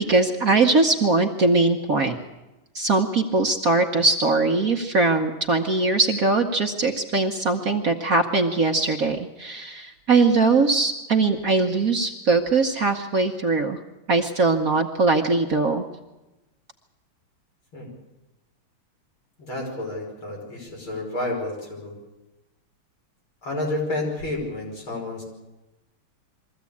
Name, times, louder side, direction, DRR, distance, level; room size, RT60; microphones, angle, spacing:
voice 1, 0.1-2.2 2.7-13.8 14.1-15.8, right 3 dB, 50° right, 3 dB, 1.3 m, -21 dB
voice 2, 19.4-22.0 23.4-25.2, left 2 dB, 70° left, -2 dB, 6.3 m, -30 dB
23.0 x 15.0 x 8.5 m, 1.0 s
omnidirectional pair, 2.4 m